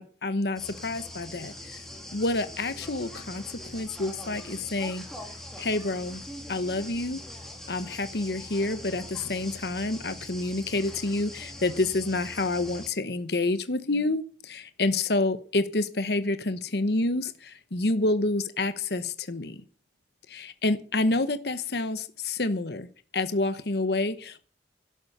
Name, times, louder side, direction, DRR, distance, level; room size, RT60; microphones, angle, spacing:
voice 1, 0.0-1.8 2.1-5.1 5.6-6.2 6.5-7.2 7.7-19.6 20.3-22.9 23.1-24.4, left 2 dB, 65° left, 1.0 m, -28 dB
sound 1, 0.6-12.9, left 1 dB, ahead, 3.3 m, -42 dB
12.0 x 11.5 x 6.7 m
head